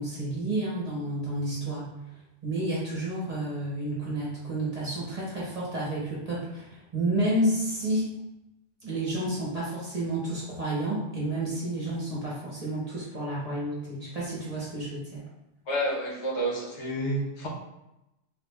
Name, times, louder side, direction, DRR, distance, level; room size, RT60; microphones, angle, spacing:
voice 1, 0.0-1.9 2.4-8.0 8.8-15.2, right 1 dB, 35° right, -7 dB, 1.0 m, -30 dB
voice 2, 15.7-17.5, right 1 dB, 65° left, -2 dB, 1.0 m, -29 dB
3.4 x 2.4 x 3.3 m, 0.91 s
omnidirectional pair, 1.3 m